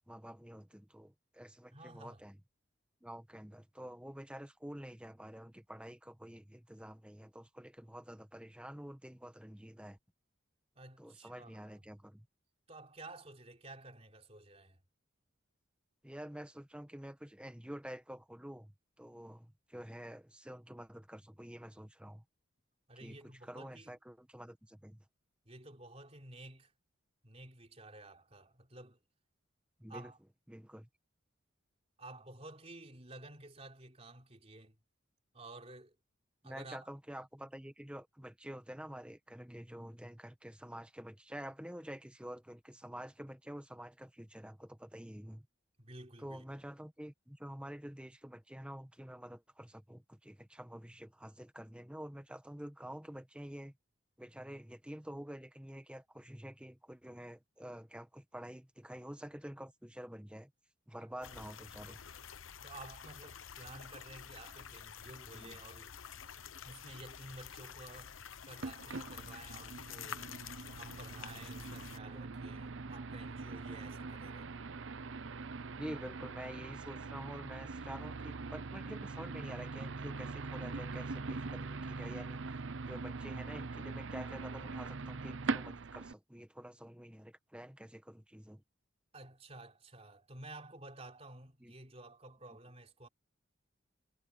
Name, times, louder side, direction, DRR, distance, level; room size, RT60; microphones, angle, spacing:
voice 1, 0.1-2.4 3.0-10.0 11.0-12.3 16.0-22.2 23.0-25.0 29.8-30.1 30.5-30.9 36.4-45.5 46.2-53.7 54.2-60.5 60.9-62.0 65.3-65.6 75.7-82.5 82.9-88.6 91.6-91.7, equal, 5° right, 1.2 m, -48 dB
voice 2, 1.7-2.2 10.8-11.8 12.7-14.8 22.9-24.0 25.5-26.7 27.2-29.0 29.9-30.2 32.0-34.8 35.3-36.0 36.4-36.9 45.8-46.5 61.0-61.1 62.6-65.9 66.6-68.2 68.4-70.2 70.8-74.6 89.1-93.1, right 2 dB, 30° right, 3.6 m, -52 dB
sound 1, 61.2-72.0, left 7 dB, 80° left, 1.0 m, -49 dB
sound 2, 68.6-86.1, right 3 dB, 70° right, 0.7 m, -42 dB
head